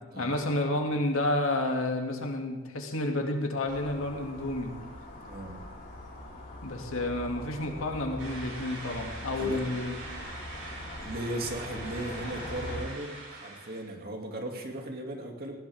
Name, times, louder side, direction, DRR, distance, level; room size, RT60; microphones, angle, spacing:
voice 1, 0.2-4.7 6.6-10.0, left 1 dB, 70° left, 2 dB, 2.4 m, -30 dB
sound 1, 3.7-12.8, left 1 dB, 40° left, 3.7 m, -42 dB
voice 2, 5.1-5.6 9.4-9.6 11.0-15.6, right 1 dB, 45° right, 2 dB, 2.4 m, -37 dB
sound 2, 8.2-13.9, right 2 dB, 70° right, 7.5 m, -43 dB
19.5 x 18.5 x 3.6 m, 1.2 s
head